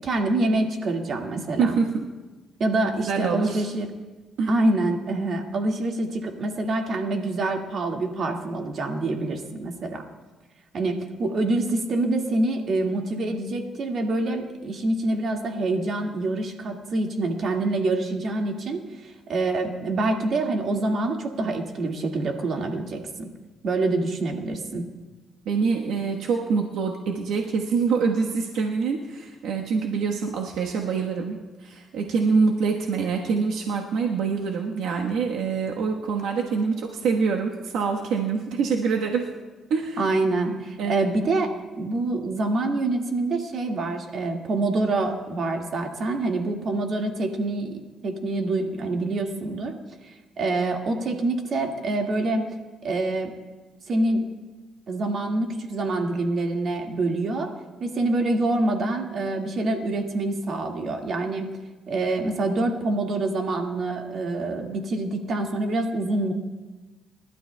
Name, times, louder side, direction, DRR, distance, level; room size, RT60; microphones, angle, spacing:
voice 1, 0.0-1.8 2.6-3.9 4.5-10.0 10.7-23.3 23.6-24.9 40.0-41.5 41.8-47.8 48.0-49.7 50.0-52.5 52.8-53.3 53.9-54.3 54.9-57.5 57.8-61.5 61.9-66.3, right 2 dB, 55° right, 2 dB, 1.9 m, -26 dB
voice 2, 1.6-2.1 3.1-3.6 4.4-4.6 25.4-39.3 39.7-40.1 40.8-41.0, right 5 dB, 85° right, 0 dB, 1.2 m, -25 dB
28.5 x 12.5 x 2.2 m, 1.2 s
cardioid pair, 90°, 0 cm